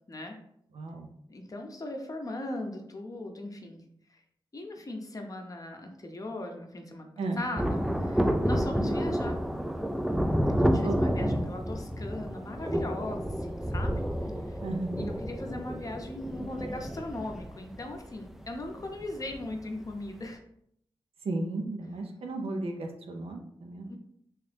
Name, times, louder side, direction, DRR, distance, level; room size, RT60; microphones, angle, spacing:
voice 1, 0.7-1.1 7.2-7.4 10.8-11.0 11.2-11.3 14.6-15.1 21.2-23.9, right 2 dB, 80° right, 2 dB, 0.6 m, -34 dB
voice 2, 1.3-4.2 4.5-9.4 10.5-14.6 15.0-20.4 23.8-24.0, left 1 dB, 35° left, 3 dB, 0.7 m, -39 dB
Thunder, 7.6-19.6 19.8-19.9, equal, 5° right, 0.3 m, -30 dB
3.1 x 2.9 x 3.3 m, 0.71 s
cardioid pair, 60°, 10 cm